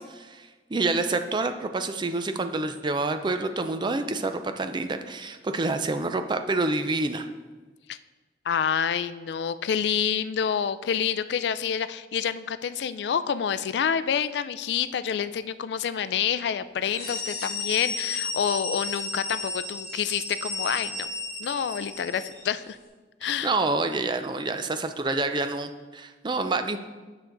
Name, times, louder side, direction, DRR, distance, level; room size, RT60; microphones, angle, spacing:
voice 1, 0.0-7.3 23.4-26.8, right 3 dB, 25° right, 8 dB, 0.4 m, -28 dB
voice 2, 8.5-21.1 21.4-22.8 23.2-23.5, left 8 dB, 70° left, 14 dB, 0.3 m, -28 dB
sound 1, 16.8-22.5, left 3 dB, 35° left, 2.1 m, -33 dB
8.0 x 6.1 x 3.8 m, 1.3 s
head